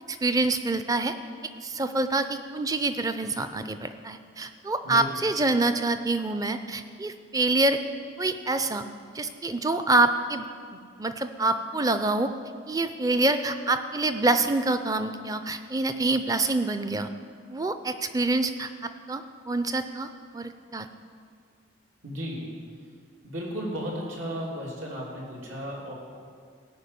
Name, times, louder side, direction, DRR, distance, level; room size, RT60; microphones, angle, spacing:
voice 1, 0.1-1.1 1.6-7.8 8.2-8.8 9.1-10.5 11.0-12.3 12.7-17.1 17.5-20.1 20.3-20.9, right 2 dB, 20° right, 9 dB, 0.5 m, -26 dB
voice 2, 22.0-22.4 23.2-25.9, equal, 80° right, -3 dB, 3.2 m, -34 dB
16.5 x 5.9 x 8.4 m, 2.2 s
head